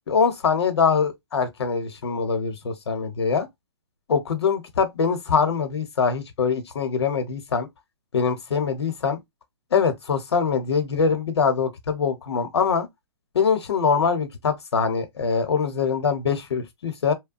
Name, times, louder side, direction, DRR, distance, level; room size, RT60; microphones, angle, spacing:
voice 1, 0.1-3.5 4.1-7.7 8.1-9.2 9.7-12.9 13.3-17.1, left 6 dB, 80° left, 0.9 m, -23 dB
2.9 x 2.2 x 2.5 m
hypercardioid pair, 155°, 14 cm